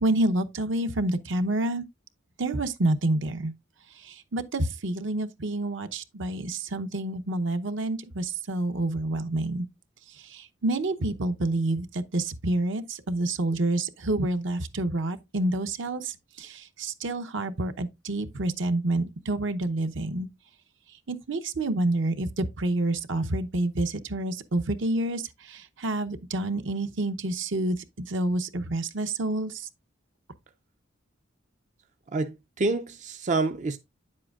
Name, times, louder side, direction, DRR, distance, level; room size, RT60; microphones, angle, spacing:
voice 1, 0.0-1.8 2.4-3.5 4.3-9.7 10.6-20.3 21.1-25.2 25.8-27.8 28.1-29.5, right 2 dB, 65° right, 0.8 m, -28 dB
voice 2, 32.1-33.8, right 3 dB, 40° right, 0.5 m, -27 dB
9.4 x 7.6 x 2.4 m
head